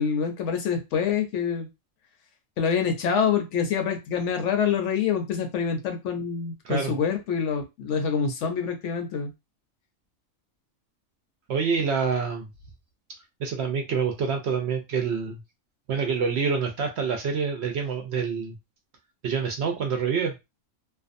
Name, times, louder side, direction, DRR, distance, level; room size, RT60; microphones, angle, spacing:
voice 1, 0.0-1.7 2.6-9.3, left 6 dB, 70° left, 5 dB, 0.9 m, -26 dB
voice 2, 11.5-12.5 13.4-15.4 15.9-18.5 19.2-20.3, right 6 dB, 65° right, 4 dB, 0.7 m, -26 dB
2.5 x 2.3 x 2.5 m, 0.23 s
omnidirectional pair, 1.4 m